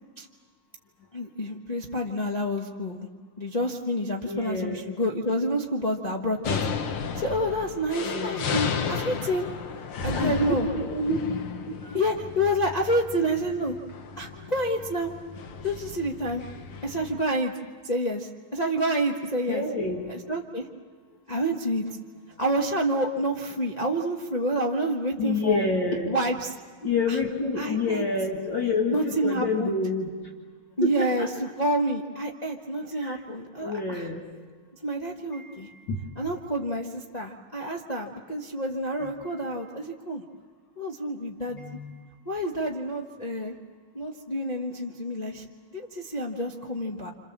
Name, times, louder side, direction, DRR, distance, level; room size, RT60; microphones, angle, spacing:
voice 1, 1.1-3.1 3.4-6.6 7.1-9.5 10.0-10.7 11.9-13.8 14.2-15.1 15.6-16.4 16.8-17.5 17.8-19.6 20.1-20.7 21.3-22.0 22.4-25.6 26.1-26.5 27.1-27.2 27.6-28.0 28.9-29.8 30.8-34.1 34.8-35.7 36.2-40.2 40.8-41.6 42.2-43.6 43.9-45.5 45.7-47.1, equal, 25° left, 0 dB, 1.1 m, -28 dB
voice 2, 4.2-4.8 8.0-8.4 10.1-11.2 11.8-12.0 19.5-20.1 25.2-26.1 26.8-30.1 30.8-31.3 33.0-33.2 33.6-34.2 35.2-36.0 39.0-39.1 41.5-42.0, left 3 dB, 60° left, 1 dB, 2.7 m, -28 dB
sound 1, 6.4-17.2, left 5 dB, 90° left, 2.2 m, -34 dB
29.0 x 26.5 x 7.4 m, 1.5 s
omnidirectional pair, 2.3 m